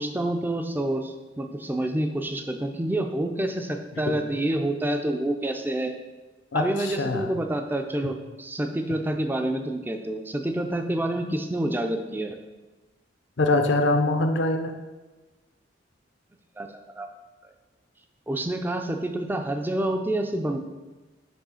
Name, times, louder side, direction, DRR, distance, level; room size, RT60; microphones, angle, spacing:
voice 1, 0.0-5.9 6.5-12.4 16.6-17.1 18.3-20.6, right 1 dB, 10° right, 5 dB, 0.4 m, -28 dB
voice 2, 6.5-7.3 13.4-14.7, left 2 dB, 65° left, 6 dB, 0.6 m, -23 dB
6.1 x 3.1 x 5.5 m, 1.2 s
head